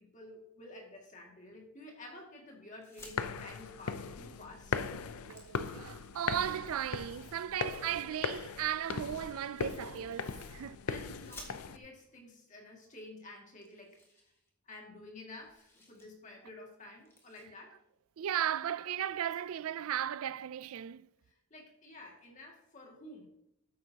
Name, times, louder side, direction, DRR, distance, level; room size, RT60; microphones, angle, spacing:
voice 1, 0.0-4.8 10.9-14.0 14.7-17.8 21.3-23.3, left 2 dB, 35° left, 2.1 m, -51 dB
sound 1, 2.7-3.2 4.5-4.6 4.9-6.3 7.4-8.3 9.6-10.5 11.1-12.0 12.9-13.0 13.2-13.3 13.6-14.9 15.2-16.1 16.4-16.6 17.0-17.4, left 1 dB, 10° left, 1.5 m, -56 dB
sound 2, 3.0-11.8, left 5 dB, 80° left, 0.6 m, -39 dB
voice 2, 5.3-10.8 18.2-21.1, right 10 dB, 75° right, 0.4 m, -36 dB
12.5 x 9.3 x 2.9 m
head